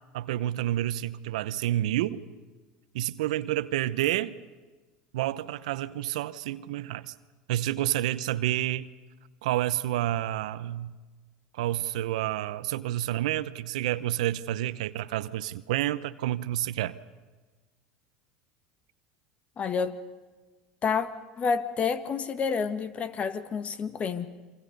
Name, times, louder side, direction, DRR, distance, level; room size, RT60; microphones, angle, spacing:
voice 1, 0.1-2.2 2.9-4.4 5.1-7.1 7.5-8.9 9.4-10.9 11.5-17.0, right 14 dB, 80° right, 15 dB, 0.7 m, -29 dB
voice 2, 19.6-20.0 20.8-21.1 21.4-24.3, left 6 dB, 35° left, 11 dB, 1.6 m, -29 dB
28.0 x 24.5 x 5.3 m, 1.3 s
hypercardioid pair, 90°, 4 cm